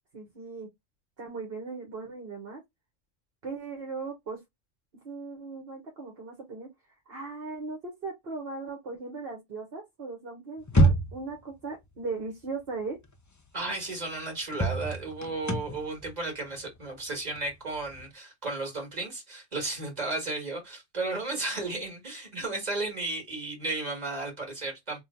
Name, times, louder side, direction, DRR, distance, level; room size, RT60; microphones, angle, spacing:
voice 1, 0.1-0.7 1.2-2.6 3.4-4.4 5.0-6.7 7.1-13.0, right 4 dB, 55° right, 1.4 m, -38 dB
sound 1, 10.6-11.4 13.2-13.3 13.7-13.8 14.5-18.1, right 1 dB, 30° left, 0.3 m, -26 dB
voice 2, 13.5-25.0, right 2 dB, 35° right, 2.0 m, -34 dB
3.7 x 2.3 x 4.3 m
omnidirectional pair, 1.3 m